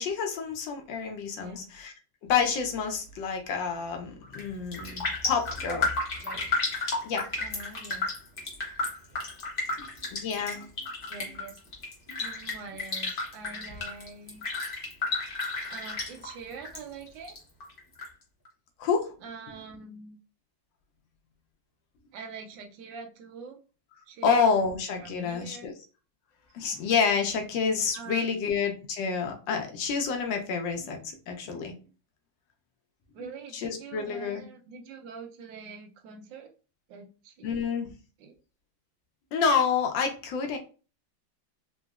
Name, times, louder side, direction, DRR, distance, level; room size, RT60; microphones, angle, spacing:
voice 1, 0.0-1.9 2.2-5.8 7.0-7.3 9.8-10.7 12.1-12.2 18.8-19.1 24.2-25.7 26.5-31.7 33.5-34.4 37.4-37.9 39.3-40.6, left 6 dB, 75° left, 4 dB, 1.2 m, -28 dB
voice 2, 1.3-1.7 5.7-5.8 6.2-6.4 7.4-8.1 11.1-11.6 12.2-14.4 15.7-17.4 19.2-20.2 22.1-23.6 24.1-24.3 25.0-25.7 27.9-28.4 33.1-36.5 36.9-37.7 38.2-38.3, right 4 dB, 75° right, 4 dB, 1.2 m, -44 dB
Raindrop, 4.2-4.5 4.7-16.8 17.1-18.1 18.4-18.5, left 3 dB, 55° left, 0.6 m, -32 dB
3.8 x 2.0 x 2.3 m, 0.35 s
omnidirectional pair, 2.1 m